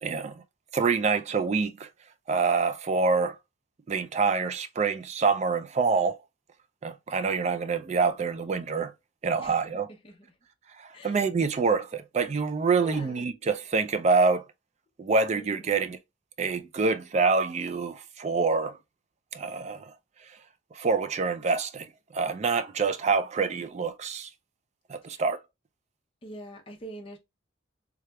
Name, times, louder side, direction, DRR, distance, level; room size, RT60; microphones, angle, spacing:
voice 1, 0.0-0.3 0.7-1.9 2.3-3.4 3.9-6.2 6.8-8.9 9.2-9.9 10.8-14.4 15.0-16.0 16.4-18.8 19.3-19.9 20.7-21.9 22.1-24.3 24.9-25.4, right 4 dB, 35° right, 0.3 m, -26 dB
voice 2, 9.9-10.3 10.9-11.2 12.8-13.4 15.3-15.9 25.0-25.2 26.2-27.2, right 1 dB, 25° left, 0.7 m, -45 dB
3.3 x 3.2 x 2.2 m
head